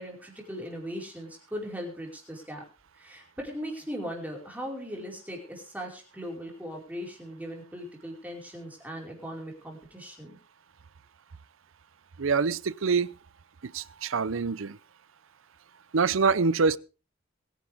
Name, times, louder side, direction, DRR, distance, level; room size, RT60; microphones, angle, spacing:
voice 1, 0.0-2.6 3.0-10.4, equal, 10° right, 5.0 m, -39 dB
voice 2, 12.2-13.1 13.7-14.8 15.9-16.8, right 4 dB, 75° right, 0.6 m, -25 dB
23.0 x 10.5 x 3.6 m
head